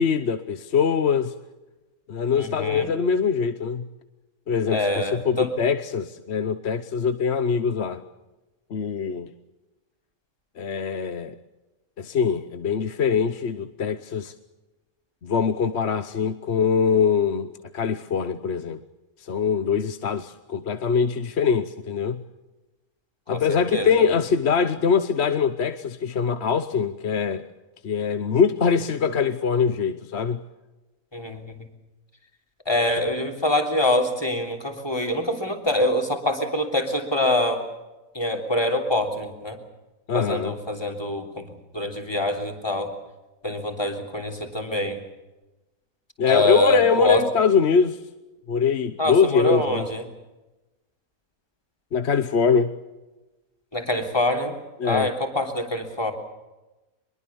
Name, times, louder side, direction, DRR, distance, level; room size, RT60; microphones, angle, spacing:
voice 1, 0.0-1.3 2.1-3.9 4.5-8.0 8.7-9.3 10.6-11.4 12.0-14.3 15.2-18.8 19.2-22.2 23.3-27.5 27.8-30.4 40.1-40.5 46.2-48.0 48.5-49.9 51.9-52.7 54.8-55.1, left 6 dB, 50° left, 1.1 m, -23 dB
voice 2, 2.4-2.9 4.7-5.5 23.3-23.4 23.7-23.9 31.1-31.6 32.6-37.6 38.1-39.6 40.1-41.5 41.7-42.9 43.4-45.0 46.2-47.3 49.0-50.0 53.7-54.6 54.8-56.1, left 1 dB, 15° left, 3.4 m, -25 dB
24.5 x 22.0 x 7.1 m
omnidirectional pair, 1.5 m